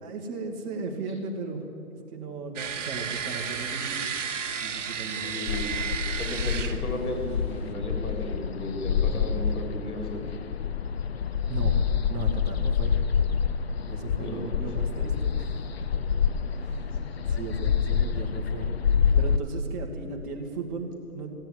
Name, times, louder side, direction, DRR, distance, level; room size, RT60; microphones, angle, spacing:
voice 1, 0.0-1.6 2.1-4.1 4.5-5.3 11.5-11.8 12.1-12.9 13.9-15.6 16.6-17.0 17.3-18.7 19.2-21.3, right 4 dB, 25° right, 1 dB, 1.7 m, -36 dB
sound 1, 2.6-7.7, right 7 dB, 55° right, 1.0 m, -33 dB
voice 2, 5.1-5.6 6.2-10.2 14.2-14.4, left 1 dB, 70° left, 1 dB, 3.7 m, -34 dB
sound 2, 5.5-19.4, left 7 dB, 45° left, 0.6 m, -27 dB
15.5 x 8.8 x 9.2 m, 2.7 s
hypercardioid pair, 145°, 45 cm